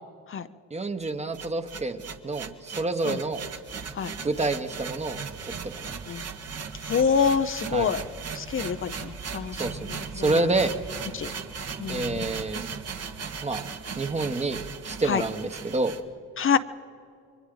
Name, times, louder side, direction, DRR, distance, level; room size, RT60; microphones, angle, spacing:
voice 1, 0.7-3.4 4.2-5.8 7.7-7.9 9.6-10.7 11.9-12.6 13.4-13.6 14.0-14.6 14.8-16.0, right 2 dB, 20° right, 8 dB, 1.2 m, -28 dB
sound 1, 1.0-16.0, right 5 dB, 50° right, 1.5 m, -37 dB
voice 2, 6.8-8.0 8.3-10.4 11.1-11.3 11.8-12.2 15.0-15.2 16.4-16.6, left 6 dB, 40° left, 10 dB, 0.7 m, -26 dB
30.0 x 23.0 x 3.9 m, 2.5 s
cardioid pair, 90°, 31 cm